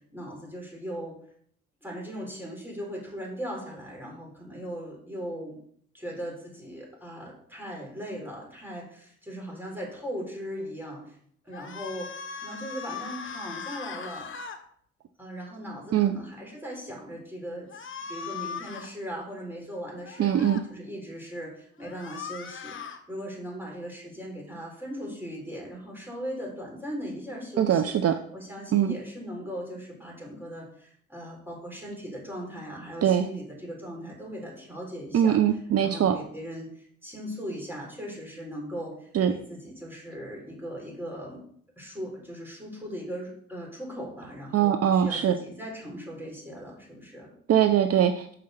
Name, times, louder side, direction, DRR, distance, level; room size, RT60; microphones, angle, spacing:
voice 1, 0.1-1.1 1.8-5.6 5.9-11.2 11.4-12.1 12.4-14.3 15.2-27.9 28.3-35.4 35.8-41.4 41.8-47.3, equal, 5° right, -2 dB, 4.3 m, -39 dB
sound 1, 11.5-14.6 17.7-18.9 20.0-20.6 21.8-23.0, left 6 dB, 40° left, 1.2 m, -39 dB
voice 2, 20.2-20.6 27.6-28.1 28.7-28.9 33.0-33.3 35.1-36.2 39.1-39.3 44.5-45.4 47.5-48.3, right 9 dB, 55° right, 9 dB, 0.6 m, -22 dB
6.7 x 5.8 x 6.6 m, 0.62 s
cardioid pair, 90°, 30 cm